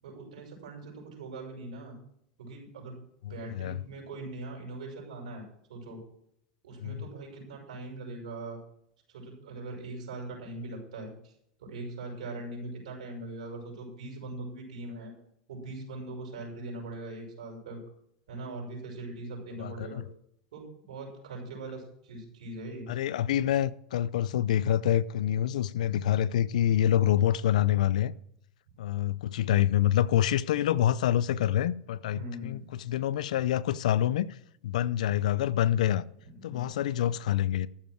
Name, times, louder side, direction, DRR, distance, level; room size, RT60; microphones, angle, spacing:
voice 1, 0.0-2.0 2.4-3.0 3.3-5.4 5.7-6.0 6.6-8.6 9.1-11.3 11.6-15.1 15.5-17.8 18.3-20.0 20.5-22.9 32.1-32.6 36.2-36.7, right 2 dB, 85° right, 6.0 m, -41 dB
voice 2, 19.6-20.0 22.9-28.1 28.8-34.4 34.6-36.0 36.4-37.7, left 11 dB, 85° left, 0.5 m, -26 dB
14.0 x 7.4 x 6.4 m
supercardioid pair, 120°, 4 cm